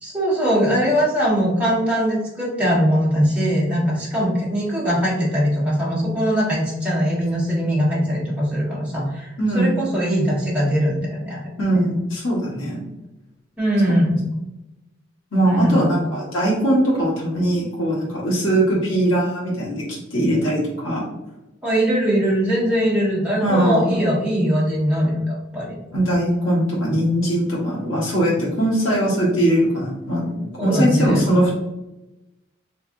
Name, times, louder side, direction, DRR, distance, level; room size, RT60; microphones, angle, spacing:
voice 1, 0.0-9.3 9.5-11.4 13.6-14.3 15.4-15.9 21.6-25.8 30.6-31.2, equal, 5° right, -8 dB, 1.4 m, -21 dB
voice 2, 9.4-9.7 11.6-12.8 15.3-21.0 23.4-24.0 25.9-31.5, right 1 dB, 75° left, -6 dB, 1.3 m, -20 dB
3.5 x 3.2 x 2.6 m, 0.97 s
head